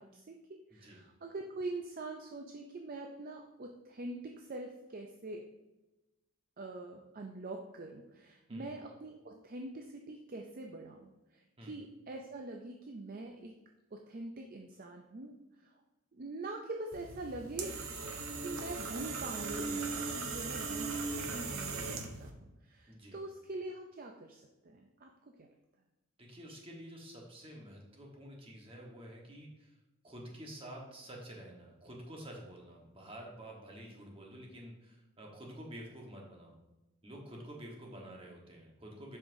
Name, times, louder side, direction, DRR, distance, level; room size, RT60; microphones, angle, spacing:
voice 1, 0.0-5.4 6.6-13.6 13.9-15.7 16.1-17.8 18.3-25.5, right 2 dB, 40° right, 3 dB, 0.4 m, -44 dB
sound 1, 16.9-22.3, right 4 dB, 70° right, 0.8 m, -38 dB
voice 2, 22.9-23.2 26.2-29.7 30.0-36.5 37.0-39.2, equal, 25° right, -1 dB, 1.2 m, -49 dB
7.7 x 5.6 x 2.6 m, 1.0 s
head